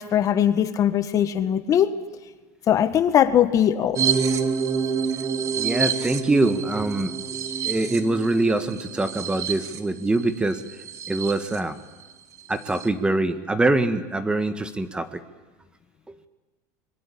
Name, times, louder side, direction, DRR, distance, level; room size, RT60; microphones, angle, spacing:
voice 1, 0.0-2.0 2.7-4.0, left 10 dB, 40° left, 10 dB, 1.4 m, -20 dB
sound 1, 3.9-11.6 12.0-12.1 12.4-12.9, right 6 dB, 35° right, 2.1 m, -28 dB
voice 2, 5.6-7.2 7.6-10.6 11.1-11.8 12.5-15.2, right 2 dB, 10° right, 9 dB, 1.7 m, -24 dB
26.0 x 22.0 x 8.7 m, 1.2 s
supercardioid pair, 115°, 9 cm